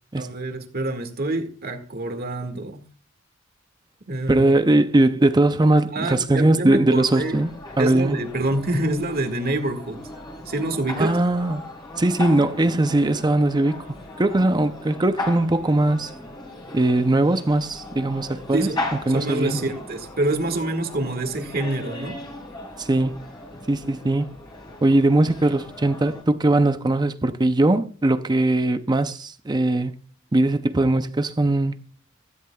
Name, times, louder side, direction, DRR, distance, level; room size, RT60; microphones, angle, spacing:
voice 1, 0.2-2.8 4.1-4.5 5.9-7.4 7.8-10.0 10.5-11.2 18.5-18.8 19.1-22.2, right 2 dB, 50° right, 1.8 m, -26 dB
voice 2, 4.3-7.5 7.8-8.2 11.0-11.6 12.0-16.1 16.7-18.7 19.1-19.6 22.8-23.2 23.7-24.3 24.8-30.0 30.3-31.8, right 2 dB, 20° right, 0.5 m, -20 dB
sound 1, 7.0-26.2, left 2 dB, 25° left, 4.1 m, -37 dB
16.0 x 13.5 x 2.3 m
head